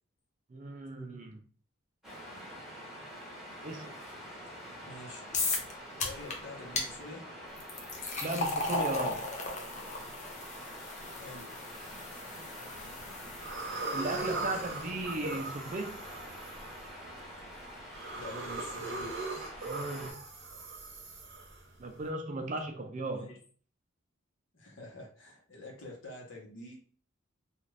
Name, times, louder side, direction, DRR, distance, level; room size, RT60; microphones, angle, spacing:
voice 1, 0.5-1.4 3.6-4.0 8.2-9.3 13.9-15.9 19.6-20.2 21.8-23.4, right 2 dB, 35° right, 0.4 m, -36 dB
Waves surf, 2.0-20.1, equal, ahead, 1.0 m, -46 dB
voice 2, 4.8-5.3 6.0-7.3 11.1-11.5 14.4-14.6 18.1-19.1 23.1-23.4 24.5-26.7, left 1 dB, 65° left, 1.0 m, -46 dB
sound 1, 5.3-5.7 6.0-6.4 6.8-6.9 7.6-14.7, left 3 dB, 35° left, 0.6 m, -36 dB
sound 2, 12.6-13.0 13.4-22.0, right 3 dB, 60° right, 0.8 m, -40 dB
2.5 x 2.4 x 3.2 m
head